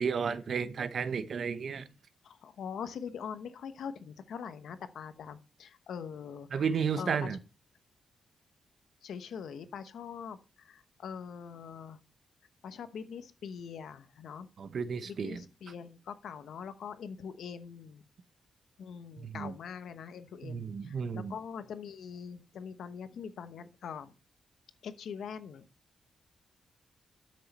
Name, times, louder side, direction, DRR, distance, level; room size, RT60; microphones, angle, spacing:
voice 1, 0.0-1.9 6.5-7.4 14.6-15.4 19.2-19.5 20.4-21.4, right 6 dB, 60° right, 0.9 m, -33 dB
voice 2, 2.2-6.6 7.0-7.3 9.0-12.0 12.6-14.5 15.0-18.0 18.8-24.1 24.8-25.7, left 7 dB, 80° left, 1.0 m, -43 dB
12.5 x 6.4 x 4.2 m
cardioid pair, 110°, 0 cm